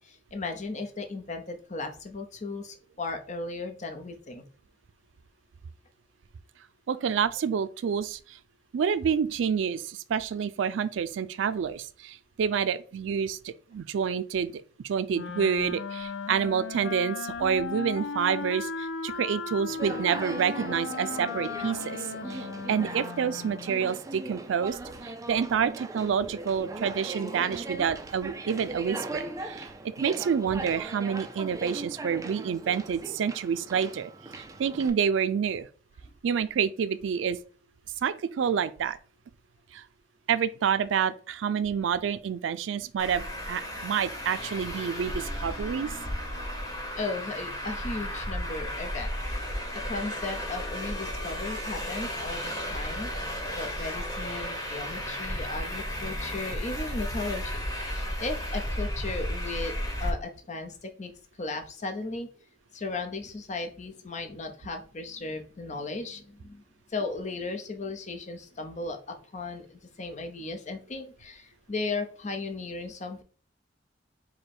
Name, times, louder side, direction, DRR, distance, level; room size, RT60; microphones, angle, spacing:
voice 1, 0.0-4.4 36.0-36.1 47.0-49.5 49.9-53.1 53.5-59.7 60.0-61.1 61.4-62.3 62.7-66.6 66.9-73.2, left 3 dB, 40° left, 0.8 m, -36 dB
voice 2, 6.9-8.4 8.7-35.7 36.2-37.4 38.0-39.0 39.7-39.8 40.3-45.9, right 7 dB, 90° right, 0.4 m, -28 dB
Wind instrument woodwind instrument, 15.1-23.8, left 4 dB, 80° left, 0.5 m, -36 dB
Conversation, 19.7-34.9, right 2 dB, 20° right, 0.4 m, -39 dB
Traffic noise roadway noise, 43.0-60.1, equal, 20° left, 1.2 m, -34 dB
4.9 x 2.2 x 4.3 m
head